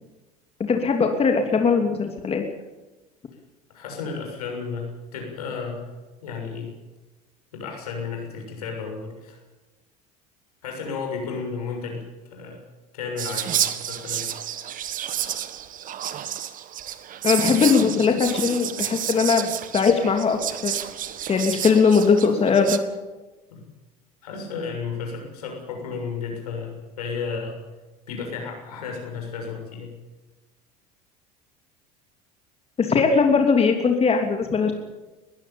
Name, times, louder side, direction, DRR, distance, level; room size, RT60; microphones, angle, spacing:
voice 1, 0.6-2.4 17.2-20.8 21.3-22.8 32.8-34.7, left 5 dB, 30° left, 4 dB, 3.0 m, -20 dB
voice 2, 3.7-5.9 6.2-6.7 7.5-9.4 10.6-12.0 12.3-12.6 12.9-14.3 23.5-23.6 24.2-27.6 28.1-29.9, left 5 dB, 80° left, 2 dB, 6.7 m, -33 dB
Whispering, 13.2-22.8, right 10 dB, 45° right, 1.7 m, -30 dB
21.5 x 15.5 x 8.8 m, 1.1 s
hypercardioid pair, 75°, 19 cm